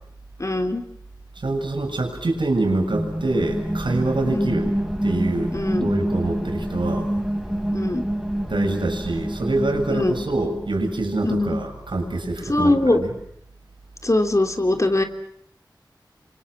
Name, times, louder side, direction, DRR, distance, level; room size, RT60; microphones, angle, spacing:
voice 1, 0.4-0.8 4.2-4.5 5.5-5.9 7.7-8.0 9.9-10.1 11.2-11.6 12.4-13.0 14.0-15.0, left 2 dB, 40° left, 6 dB, 3.2 m, -21 dB
voice 2, 1.4-4.6 5.0-7.1 8.5-13.1, right 2 dB, 80° right, 4 dB, 6.7 m, -25 dB
sound 1, 2.9-10.7, right 1 dB, 5° right, 5.6 m, -27 dB
29.0 x 25.0 x 6.1 m, 0.76 s
wide cardioid pair, 50°, 8 cm